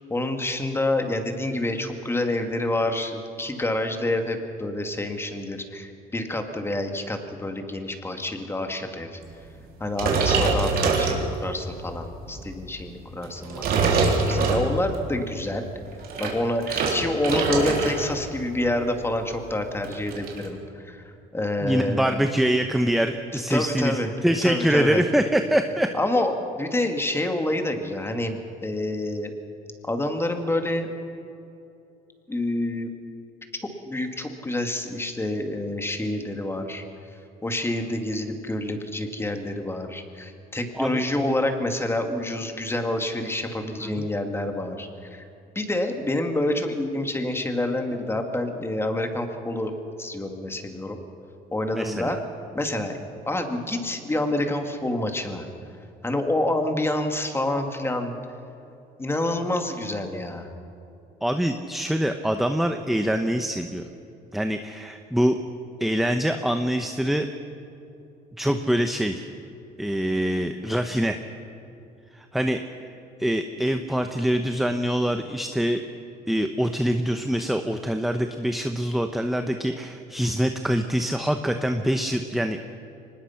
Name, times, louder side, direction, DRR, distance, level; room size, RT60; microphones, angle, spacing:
voice 1, 0.1-9.2 9.8-15.7 16.2-22.1 23.3-25.0 25.9-29.3 29.8-30.9 32.3-32.9 33.5-36.8 37.4-45.2 45.6-51.0 51.5-52.2 52.5-53.0 53.3-55.4 56.0-58.2 59.0-60.5, left 1 dB, 15° left, 5 dB, 2.3 m, -28 dB
sound 1, 9.9-11.7 12.2-12.5 13.2-15.0 15.9-18.1 18.4-18.7 19.0-19.1 19.3-20.4, right 4 dB, 65° right, 3.8 m, -24 dB
voice 2, 21.6-26.0 40.7-41.0 43.8-44.1 51.7-52.2 61.2-63.9 64.3-65.4 65.8-67.3 68.4-69.3 69.8-71.2 72.1-72.6 73.2-75.8 76.3-82.7, equal, ahead, 6 dB, 0.9 m, -24 dB
24.0 x 20.0 x 5.9 m, 2.7 s
cardioid pair, 110°, 17 cm